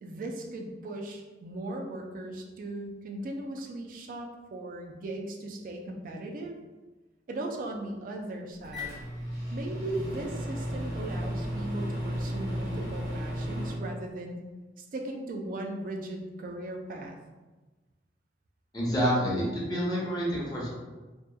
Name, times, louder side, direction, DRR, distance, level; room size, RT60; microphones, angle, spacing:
voice 1, 0.0-6.5 7.3-9.0 9.5-14.4 14.8-17.2, right 1 dB, 50° right, 1 dB, 0.3 m, -38 dB
Microwave oven, 8.6-13.8, equal, 70° right, 0.8 m, -34 dB
voice 2, 18.7-20.7, equal, 20° left, -6 dB, 0.6 m, -28 dB
2.8 x 2.2 x 2.2 m, 1.2 s
head